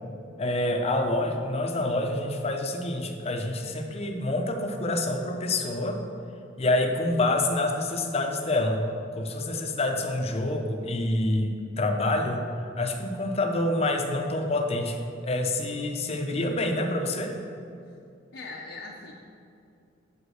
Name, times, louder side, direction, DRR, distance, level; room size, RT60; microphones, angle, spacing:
voice 1, 0.4-6.0 6.6-8.8 9.2-12.4 12.8-15.0 15.2-17.4, left 2 dB, 35° left, 4 dB, 0.7 m, -27 dB
voice 2, 18.3-19.1, left 3 dB, 75° left, -3 dB, 0.8 m, -40 dB
8.2 x 5.2 x 6.3 m, 2.5 s
head